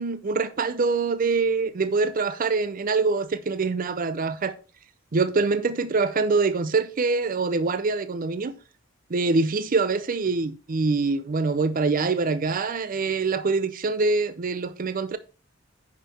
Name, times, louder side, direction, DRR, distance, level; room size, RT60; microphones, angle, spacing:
voice 1, 0.0-4.5 5.1-8.5 9.1-15.2, right 4 dB, 45° right, 0.5 m, -24 dB
9.6 x 5.6 x 4.2 m
head